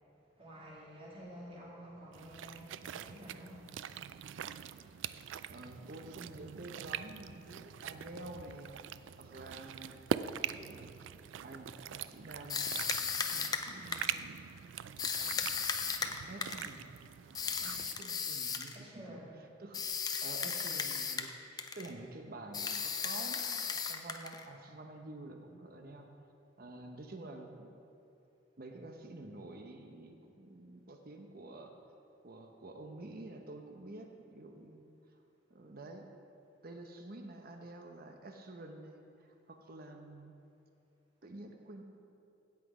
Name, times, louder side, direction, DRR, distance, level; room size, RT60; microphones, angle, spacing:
voice 1, 0.4-3.8 18.7-19.3, equal, 30° right, -5 dB, 2.6 m, -50 dB
sound 1, 2.1-18.0, right 8 dB, 90° right, 0.3 m, -43 dB
voice 2, 5.5-10.0 10.7-11.0 11.4-12.6 13.3-14.4 16.3-16.9 17.6-19.2 19.6-19.8 20.2-26.1 26.6-27.7 28.6-31.7 32.2-34.9 35.5-36.1 36.6-40.3 41.2-41.8, right 2 dB, 55° right, 4 dB, 0.8 m, -49 dB
sound 2, 12.5-14.2 15.0-16.7 17.3-18.8 19.7-21.3 21.6-21.9 22.5-24.4, left 6 dB, 20° left, 0.6 m, -36 dB
16.5 x 5.9 x 4.9 m, 2.6 s
head